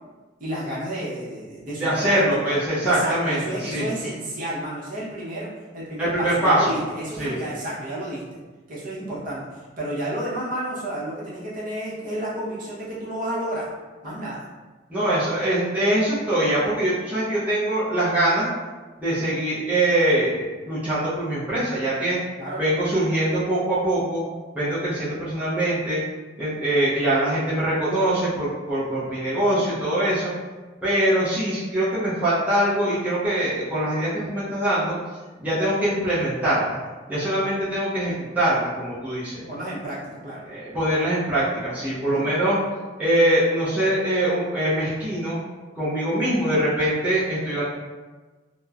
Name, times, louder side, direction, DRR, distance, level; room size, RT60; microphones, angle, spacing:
voice 1, 0.4-2.6 2.8-8.2 8.7-13.7 14.0-14.5 22.4-22.6 39.4-40.4 41.9-42.3, right 1 dB, 45° right, -8 dB, 0.8 m, -31 dB
voice 2, 1.8-3.9 6.0-6.7 7.2-7.4 14.9-18.5 19.0-22.2 22.6-24.2 24.5-26.0 26.4-30.3 30.8-35.0 35.4-36.8 37.1-39.4 40.4-42.6 43.0-45.4 45.8-47.6, right 1 dB, 10° right, -12 dB, 0.6 m, -23 dB
3.0 x 2.0 x 2.3 m, 1.3 s
head